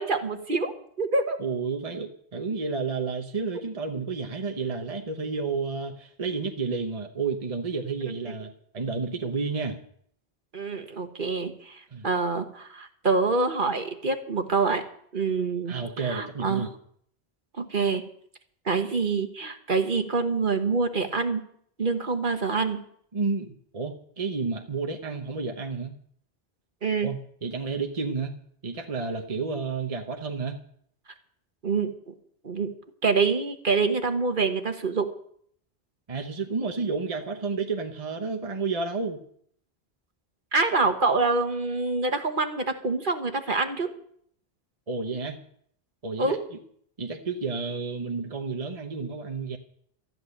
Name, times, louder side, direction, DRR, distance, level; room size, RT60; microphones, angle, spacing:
voice 1, 0.0-1.4 8.3-8.4 10.5-14.8 15.1-16.7 17.6-18.0 18.6-21.4 21.8-22.8 26.8-27.1 31.6-31.9 32.4-32.7 33.0-35.1 40.5-43.9 46.2-46.4, right 4 dB, 55° right, 6 dB, 1.5 m, -26 dB
voice 2, 1.4-9.8 11.9-12.1 15.7-16.7 23.1-25.9 27.0-28.3 28.6-30.6 36.1-39.2 44.9-45.4 46.0-46.4 47.0-49.6, right 4 dB, 35° right, 4 dB, 1.1 m, -31 dB
13.5 x 11.0 x 6.6 m, 0.65 s
omnidirectional pair, 1.1 m